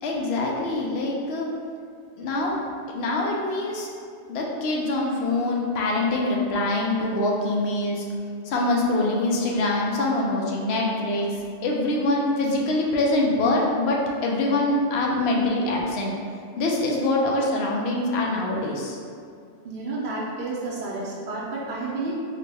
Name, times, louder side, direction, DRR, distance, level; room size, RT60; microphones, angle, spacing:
voice 1, 0.0-1.5 2.2-2.6 2.9-3.9 4.3-8.1 8.4-11.3 11.6-16.1 16.6-19.0, left 2 dB, 65° left, -2 dB, 0.8 m, -24 dB
voice 2, 19.6-22.1, right 3 dB, 55° right, -6 dB, 0.6 m, -31 dB
4.1 x 2.1 x 3.3 m, 2.2 s
omnidirectional pair, 1.2 m